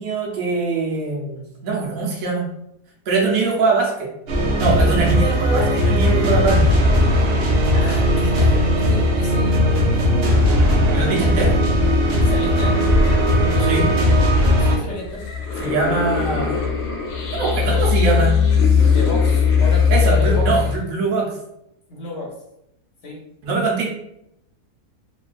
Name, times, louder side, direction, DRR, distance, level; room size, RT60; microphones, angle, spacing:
voice 1, 0.0-2.4 3.1-4.1 4.6-6.9 10.9-11.6 13.6-13.9 15.6-16.6 17.3-18.3 19.9-21.3 23.4-23.9, right 4 dB, 65° right, -3 dB, 1.1 m, -22 dB
sound 1, 4.3-14.8, equal, 80° right, 0.5 m, -17 dB
voice 2, 7.7-10.4 12.1-12.9 14.6-15.3 17.7-20.7 21.9-22.3 23.0-23.2, left 1 dB, 55° left, -2 dB, 0.9 m, -32 dB
sound 2, 11.8-20.8, left 6 dB, 80° left, 1.2 m, -20 dB
3.1 x 2.3 x 2.4 m, 0.81 s
omnidirectional pair, 1.7 m